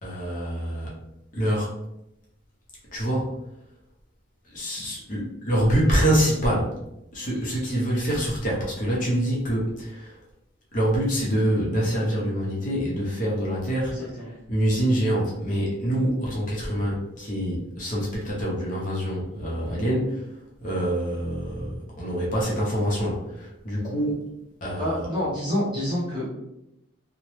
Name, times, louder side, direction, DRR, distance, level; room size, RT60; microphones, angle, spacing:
voice 1, 0.0-1.0 1.3-1.7 2.9-3.4 4.4-6.8 7.1-10.2 10.7-24.3 24.6-25.1, equal, 40° left, -4 dB, 0.7 m, -26 dB
voice 2, 13.8-14.3 24.8-26.3, left 1 dB, 25° right, -7 dB, 0.9 m, -28 dB
2.9 x 2.1 x 3.0 m, 0.86 s
head